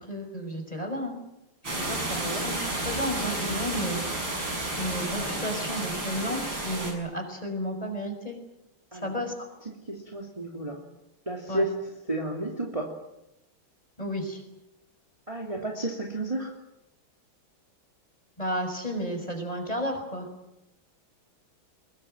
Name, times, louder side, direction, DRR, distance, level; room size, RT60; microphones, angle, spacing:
voice 1, 0.1-1.2 1.8-4.5 4.8-8.4 8.9-9.3 11.5-11.6 14.0-14.4 18.4-20.3, equal, 15° left, 5 dB, 6.1 m, -32 dB
sound 1, 1.6-6.9, right 2 dB, 60° right, 7.7 m, -31 dB
voice 2, 2.1-2.4 8.9-9.1 9.6-10.8 11.3-11.7 12.0-12.9 15.3-16.5, right 1 dB, 15° right, 0 dB, 3.0 m, -32 dB
24.0 x 22.0 x 9.1 m, 0.90 s
omnidirectional pair, 2.3 m